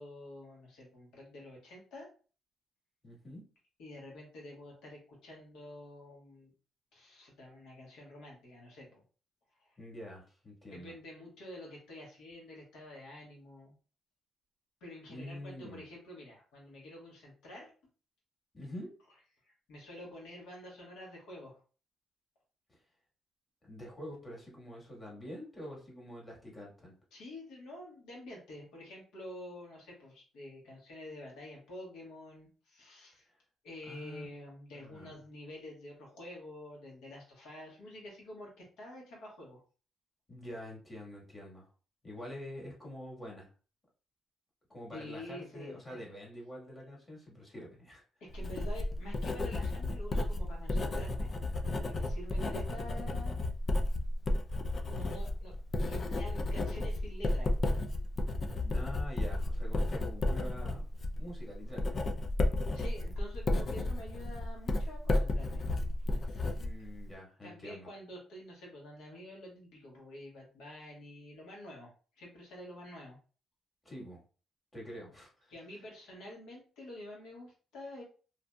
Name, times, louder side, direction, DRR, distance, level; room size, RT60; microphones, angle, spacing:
voice 1, 0.0-2.1 3.8-6.5 6.9-9.0 9.6-9.7 10.7-13.7 14.8-17.7 19.4-21.6 27.1-33.3 33.6-39.6 44.9-46.0 48.2-51.3 51.6-53.4 54.9-55.5 55.9-57.5 62.7-65.6 66.2-66.6 67.4-73.2 75.5-78.0, left 1 dB, 85° left, -2 dB, 1.1 m, -48 dB
voice 2, 3.0-3.4 9.8-11.0 15.1-15.8 18.5-18.9 23.6-26.9 33.9-34.3 34.7-35.1 40.3-41.7 42.0-43.5 44.7-48.0 58.5-60.8 61.2-62.0 66.5-67.9 73.8-74.2 74.7-75.5, equal, 20° left, -3 dB, 1.4 m, -46 dB
Writing, 48.3-67.1, left 2 dB, 40° left, 0.4 m, -33 dB
2.7 x 2.5 x 2.2 m, 0.38 s
cardioid pair, 90°, 0 cm